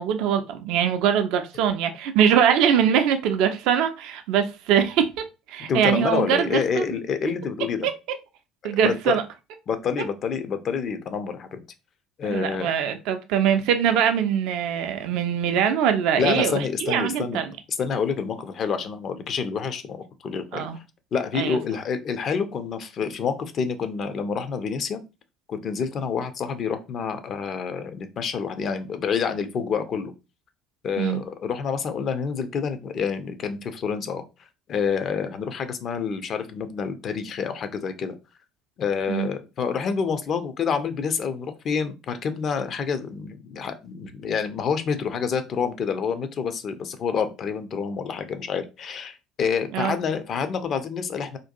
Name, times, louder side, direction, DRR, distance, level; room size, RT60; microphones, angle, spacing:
voice 1, 0.0-6.9 7.8-7.9 8.6-9.2 12.3-17.5 20.5-20.8 21.3-21.6 31.0-31.2 39.1-39.3 49.7-50.0, right 8 dB, 60° right, 0.3 m, -22 dB
voice 2, 5.7-7.9 8.6-9.2 9.7-11.6 12.2-12.7 16.2-17.4 17.8-20.0 20.2-20.7 21.1-25.0 25.5-30.1 30.8-34.2 34.7-38.1 38.8-51.4, left 6 dB, 45° left, 0.4 m, -28 dB
2.5 x 2.2 x 2.5 m
figure-of-eight pair, 60°, 0 cm